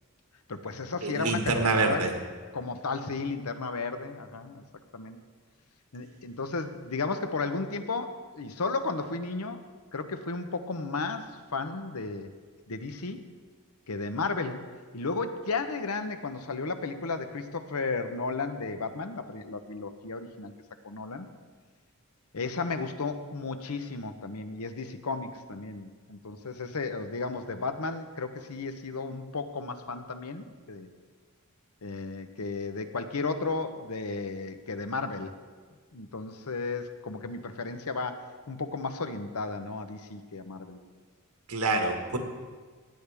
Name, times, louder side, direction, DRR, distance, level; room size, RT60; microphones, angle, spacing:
voice 1, 0.5-2.1 2.5-4.6 4.9-5.2 5.9-9.6 9.9-12.3 12.7-13.2 13.9-14.6 14.9-20.5 20.8-21.3 22.3-30.9 31.8-35.3 35.9-40.8, left 3 dB, 80° left, 8 dB, 0.9 m, -34 dB
voice 2, 1.0-2.1 41.5-42.2, right 3 dB, 85° right, 3 dB, 1.6 m, -26 dB
17.0 x 9.8 x 3.5 m, 1.5 s
head